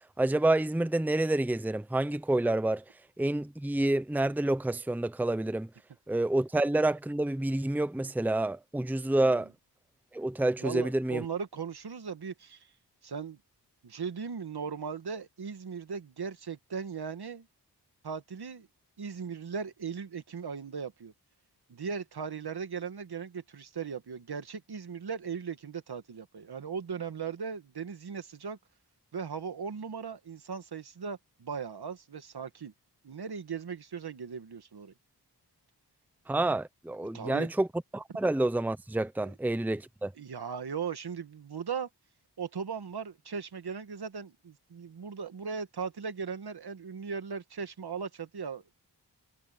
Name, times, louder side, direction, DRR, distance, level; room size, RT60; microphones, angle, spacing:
voice 1, 0.2-2.8 3.2-5.7 6.1-9.5 10.1-11.2 36.3-37.7 37.9-40.1, right 2 dB, 5° right, 0.8 m, -28 dB
voice 2, 9.1-9.5 10.6-12.7 13.0-13.4 13.8-17.5 18.0-18.7 19.0-21.1 21.7-28.6 29.1-32.7 33.0-34.9 37.1-37.5 39.2-39.3 40.2-41.9 42.4-48.6, right 6 dB, 65° right, 1.8 m, -38 dB
wide cardioid pair, 100°, 41 cm